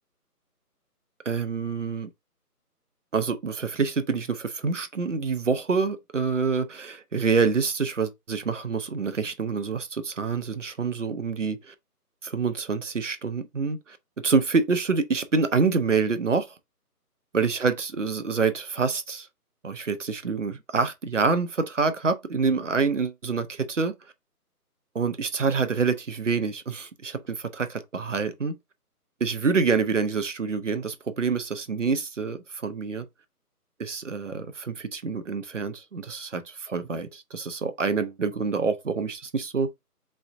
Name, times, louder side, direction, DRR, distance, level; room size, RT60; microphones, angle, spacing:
voice 1, 1.3-2.1 3.1-11.7 12.2-14.0 14.2-16.5 17.3-19.3 19.6-23.9 24.9-28.5 29.2-33.1 33.8-39.7, right 4 dB, 50° right, 0.7 m, -26 dB
3.9 x 3.2 x 3.6 m
figure-of-eight pair, 155°, 47 cm